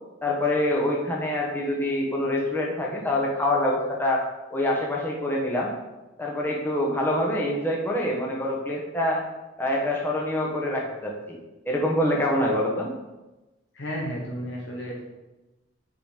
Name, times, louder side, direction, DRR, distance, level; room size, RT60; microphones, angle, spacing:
voice 1, 0.2-4.2 4.5-5.7 6.2-9.2 9.6-11.4 11.7-12.9, left 1 dB, 10° left, -3 dB, 1.2 m, -25 dB
voice 2, 13.7-15.0, equal, 65° left, -3 dB, 1.1 m, -32 dB
5.9 x 5.1 x 5.1 m, 1.1 s
head